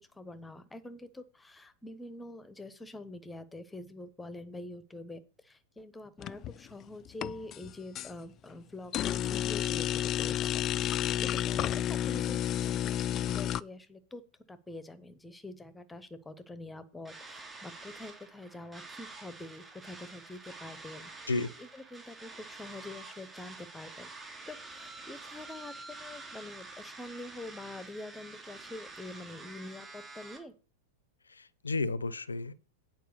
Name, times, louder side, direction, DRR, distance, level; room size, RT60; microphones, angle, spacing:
voice 1, 0.1-14.2 14.5-21.1 21.6-24.1 24.5-30.5, left 2 dB, 10° left, 0.9 m, -46 dB
sound 1, 6.2-6.7 7.1-8.1 8.9-13.6, left 11 dB, 35° left, 0.3 m, -31 dB
sound 2, 17.0-30.4, right 3 dB, 15° right, 3.1 m, -48 dB
voice 2, 31.3-32.5, left 3 dB, 80° left, 0.6 m, -32 dB
9.3 x 4.7 x 6.6 m
figure-of-eight pair, 95°, 0 cm